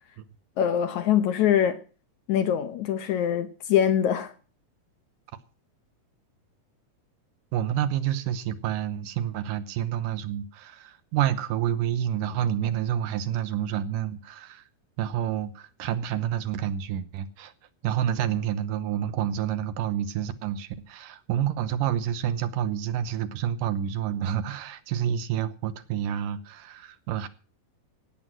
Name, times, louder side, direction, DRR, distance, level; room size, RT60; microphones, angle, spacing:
voice 1, 0.6-1.8 2.3-4.3, left 9 dB, 70° left, 1.9 m, -23 dB
voice 2, 7.5-14.6 15.0-17.5 17.8-27.3, right 10 dB, 75° right, 2.5 m, -28 dB
17.5 x 8.0 x 7.5 m
omnidirectional pair, 4.0 m